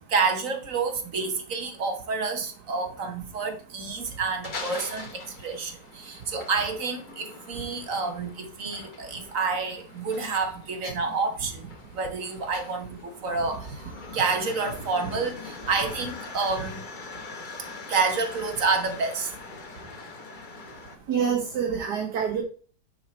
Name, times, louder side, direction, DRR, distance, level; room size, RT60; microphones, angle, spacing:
voice 1, 0.0-13.8 14.1-16.8 17.9-19.3, right 4 dB, 55° right, 6 dB, 1.5 m, -29 dB
sound 1, 4.0-21.0, left 4 dB, 35° left, 0.9 m, -43 dB
voice 2, 21.1-22.4, right 7 dB, 75° right, 1 dB, 1.8 m, -27 dB
9.2 x 4.3 x 4.3 m, 0.41 s
omnidirectional pair, 1.8 m